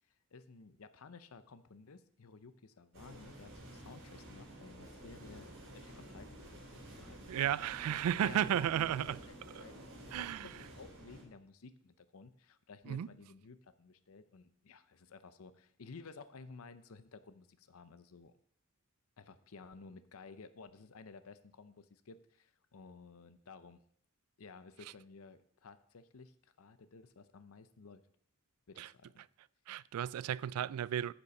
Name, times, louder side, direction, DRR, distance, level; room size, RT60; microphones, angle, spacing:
voice 1, 0.3-7.2 8.2-9.2 9.6-10.3 10.6-18.3 19.2-23.8 24.4-28.0 28.7-29.2, left 4 dB, 75° left, 0.6 m, -54 dB
sound 1, 2.9-11.2, right 1 dB, 65° right, 4.1 m, -51 dB
voice 2, 7.3-9.2 10.1-10.5 12.9-13.1 28.8-28.9 29.7-31.1, right 10 dB, 85° right, 0.3 m, -33 dB
9.8 x 7.0 x 5.3 m
head